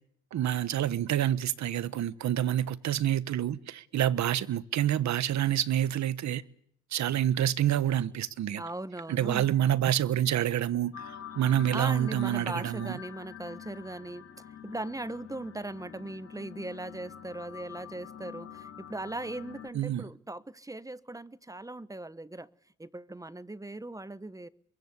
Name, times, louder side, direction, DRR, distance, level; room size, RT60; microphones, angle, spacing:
voice 1, 0.3-6.4 6.9-8.6 9.1-13.0 19.7-20.1, right 11 dB, 65° right, 1.2 m, -28 dB
voice 2, 8.6-9.5 11.7-22.5 22.8-24.5, right 2 dB, 10° right, 1.1 m, -39 dB
sound 1, 10.9-19.7, left 9 dB, 45° left, 5.2 m, -46 dB
26.0 x 22.5 x 8.3 m
cardioid pair, 90°, 30 cm